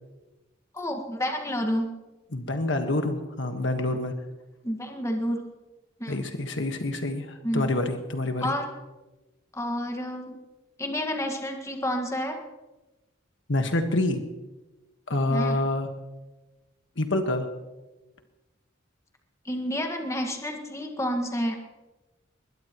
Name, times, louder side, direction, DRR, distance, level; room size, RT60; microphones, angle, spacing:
voice 1, 0.7-1.9 4.6-5.4 6.0-6.2 7.4-7.7 8.4-8.7 9.5-10.3 10.8-12.4 15.3-15.6 19.4-21.6, equal, 15° left, 3 dB, 1.8 m, -29 dB
voice 2, 2.3-4.1 6.1-8.5 13.5-14.2 15.1-15.9 17.0-17.5, left 2 dB, 70° left, 6 dB, 1.5 m, -27 dB
21.0 x 20.5 x 3.1 m, 1.1 s
head